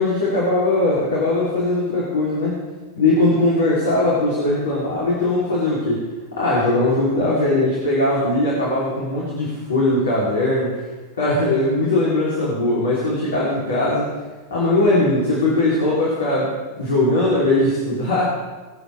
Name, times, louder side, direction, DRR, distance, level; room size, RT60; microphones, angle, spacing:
voice 1, 0.0-2.6 2.9-6.0 6.4-10.8 11.2-14.1 14.5-18.2, left 2 dB, 65° left, -6 dB, 3.5 m, -20 dB
22.5 x 8.1 x 3.5 m, 1.3 s
figure-of-eight pair, 90°, 0 cm